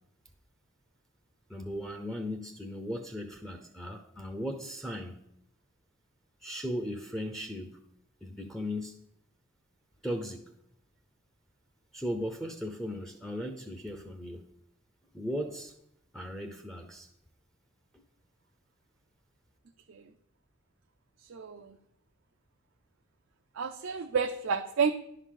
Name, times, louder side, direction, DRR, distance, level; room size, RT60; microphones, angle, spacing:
voice 1, 1.5-5.2 6.4-7.8 8.2-9.0 10.0-10.4 11.9-14.4 15.1-15.7 16.1-17.1 17.9-18.0, equal, ahead, 2 dB, 0.6 m, -37 dB
voice 2, 21.3-21.8 23.6-24.9, right 6 dB, 85° right, 5 dB, 0.5 m, -30 dB
10.5 x 3.9 x 6.4 m, 0.77 s
head